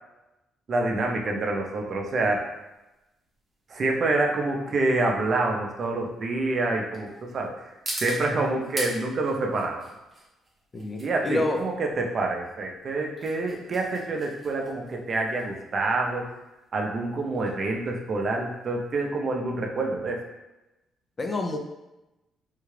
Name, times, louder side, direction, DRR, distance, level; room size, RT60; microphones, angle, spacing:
voice 1, 0.7-2.5 3.7-7.1 7.3-7.5 8.0-9.8 11.0-16.3 16.7-20.2, right 2 dB, 50° right, 1 dB, 0.6 m, -27 dB
sound 1, 2.2-18.9, right 1 dB, 25° right, 0.9 m, -42 dB
voice 2, 10.7-11.6 21.2-21.6, left 2 dB, 35° left, 4 dB, 0.5 m, -28 dB
3.6 x 2.3 x 3.2 m, 0.99 s
cardioid pair, 90°, 0 cm